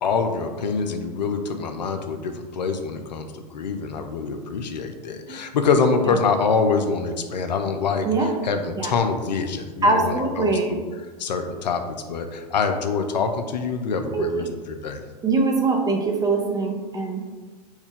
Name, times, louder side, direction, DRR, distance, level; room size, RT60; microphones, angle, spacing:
voice 1, 0.0-8.1 8.4-10.8 11.2-15.0, left 5 dB, 80° left, 7 dB, 0.4 m, -25 dB
voice 2, 9.8-10.7 13.9-14.5 15.2-17.2, right 3 dB, 20° right, 2 dB, 0.6 m, -22 dB
4.4 x 2.2 x 3.6 m, 1.4 s
hypercardioid pair, 90°, 21 cm